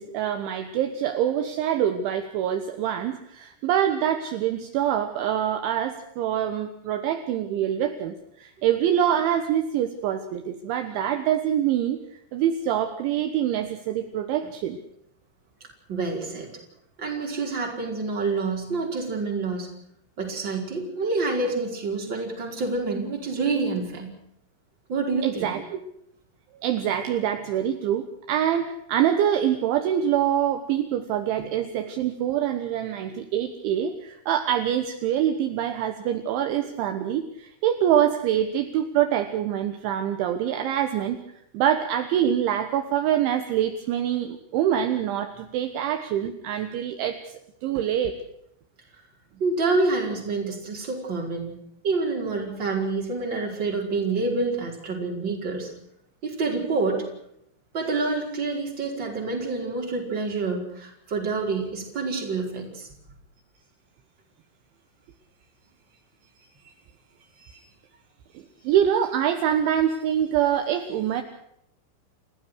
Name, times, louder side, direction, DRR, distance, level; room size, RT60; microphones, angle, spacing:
voice 1, 0.0-12.0 12.3-14.8 25.2-25.8 26.6-41.2 41.5-48.1 67.4-67.6 68.4-71.2, right 10 dB, 70° right, 7 dB, 3.4 m, -25 dB
voice 2, 15.9-16.5 17.0-19.7 20.2-24.1 24.9-25.5 49.3-51.6 51.8-55.7 56.2-57.1 57.7-62.9, right 3 dB, 20° right, 1 dB, 5.0 m, -27 dB
29.5 x 15.5 x 6.5 m, 0.74 s
omnidirectional pair, 6.0 m